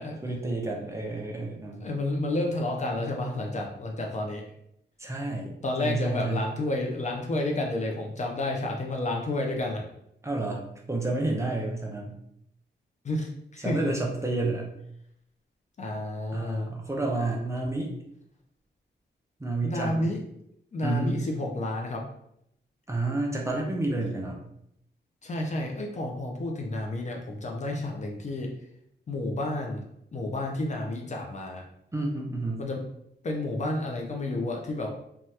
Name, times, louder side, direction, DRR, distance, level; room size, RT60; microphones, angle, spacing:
voice 1, 0.2-1.9 5.0-5.5 5.8-6.5 10.2-10.6 10.9-12.2 13.6-14.7 16.3-17.9 19.4-20.1 20.8-21.2 22.9-24.4 31.9-32.6, right 2 dB, 15° right, -1 dB, 0.5 m, -30 dB
voice 2, 1.8-4.4 5.6-9.8 13.0-13.9 15.8-16.7 19.6-20.2 20.7-22.0 25.2-28.5 29.1-29.8 30.1-31.6 32.6-32.8 33.2-34.9, left 2 dB, 40° left, 1 dB, 0.5 m, -30 dB
2.8 x 2.3 x 3.2 m, 0.76 s
wide cardioid pair, 135°, 19 cm